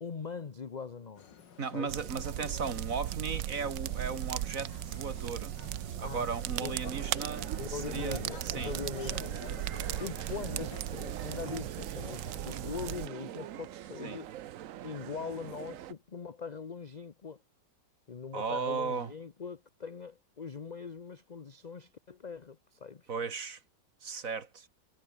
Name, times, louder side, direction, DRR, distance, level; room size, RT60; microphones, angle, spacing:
voice 1, 0.0-1.2 1.7-1.9 6.0-6.2 6.6-6.9 7.6-9.7 10.0-14.3 14.8-17.4 18.1-23.1, left 5 dB, 35° left, 0.7 m, -41 dB
sound 1, 1.2-12.9, left 7 dB, 75° left, 2.3 m, -50 dB
voice 2, 1.6-5.5 6.0-8.7 14.0-14.2 18.3-19.1 23.1-23.6 24.0-24.7, right 5 dB, 50° right, 2.1 m, -36 dB
sound 2, 1.9-13.1, right 14 dB, 80° right, 1.4 m, -37 dB
sound 3, 6.8-15.9, right 12 dB, 65° right, 0.8 m, -44 dB
omnidirectional pair, 1.9 m